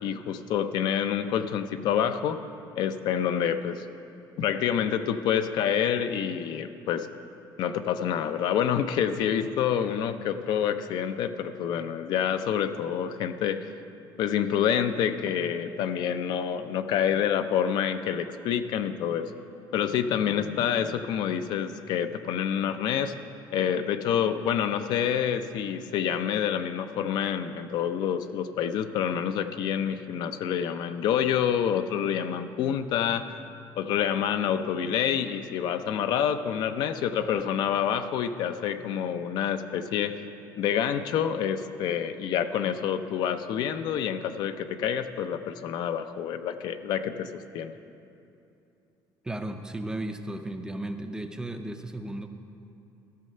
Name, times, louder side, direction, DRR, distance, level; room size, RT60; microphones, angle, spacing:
voice 1, 0.0-2.4 2.8-3.9 4.4-7.1 7.6-13.6 14.2-19.3 19.7-23.1 23.5-33.4 33.8-40.2 40.6-47.7, left 9 dB, 60° left, 10 dB, 0.5 m, -27 dB
voice 2, 49.2-52.3, right 1 dB, 10° right, 7 dB, 0.4 m, -35 dB
14.0 x 6.6 x 5.4 m, 2.7 s
cardioid pair, 160°, 8 cm